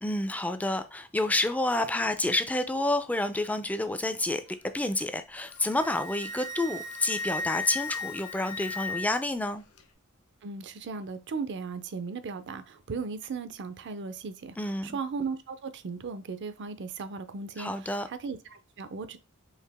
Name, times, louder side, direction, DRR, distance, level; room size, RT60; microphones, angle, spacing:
voice 1, 0.0-4.4 4.7-9.6 14.6-15.0 17.6-18.1, left 2 dB, 5° left, 0.4 m, -29 dB
Wind instrument woodwind instrument, 5.4-9.3, left 3 dB, 85° left, 0.7 m, -36 dB
voice 2, 10.4-19.2, right 4 dB, 55° right, 0.5 m, -37 dB
4.8 x 2.8 x 3.4 m
head